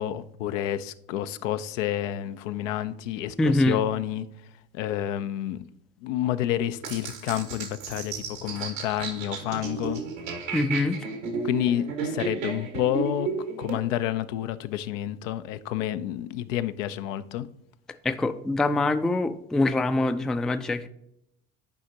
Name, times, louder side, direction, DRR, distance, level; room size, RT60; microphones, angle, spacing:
voice 1, 0.0-4.3 4.7-5.6 6.0-10.0 11.4-13.3 13.6-17.5, left 12 dB, 70° left, 0.5 m, -29 dB
voice 2, 3.4-3.8 10.5-11.0 18.0-20.9, left 2 dB, ahead, 0.3 m, -24 dB
sound 1, 6.8-13.8, right 4 dB, 80° right, 1.4 m, -33 dB
10.5 x 4.9 x 2.8 m
hypercardioid pair, 60°, 39 cm